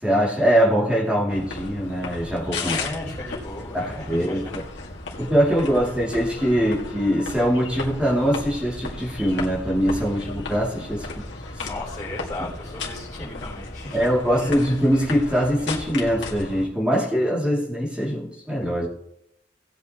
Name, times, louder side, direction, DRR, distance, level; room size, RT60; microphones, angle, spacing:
voice 1, 0.0-2.8 3.7-4.4 5.2-11.1 13.9-18.9, equal, 5° right, -5 dB, 2.7 m, -22 dB
sound 1, 1.3-16.6, left 3 dB, 75° left, 2.1 m, -35 dB
voice 2, 2.6-4.5 5.6-6.0 11.6-14.7, left 2 dB, 20° left, -11 dB, 4.5 m, -36 dB
19.0 x 8.1 x 3.0 m, 0.78 s
head